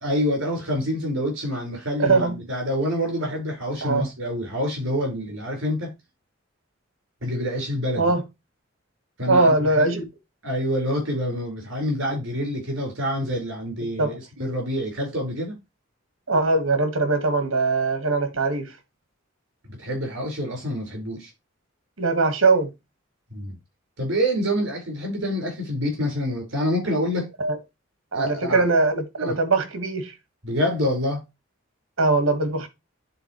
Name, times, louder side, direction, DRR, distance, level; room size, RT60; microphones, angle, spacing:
voice 1, 0.0-5.9 7.2-8.0 9.2-9.9 10.4-15.5 19.8-21.3 23.3-23.6 24.0-27.3 28.1-28.6 29.2-29.3 30.4-31.2, equal, 65° right, 4.6 m, -27 dB
voice 2, 2.0-2.4 3.8-4.1 8.0-8.2 9.3-10.1 14.0-14.2 16.3-18.7 22.0-22.7 27.4-27.6 28.1-30.1 32.0-32.7, right 3 dB, 80° right, 1.5 m, -21 dB
10.5 x 4.0 x 3.0 m
head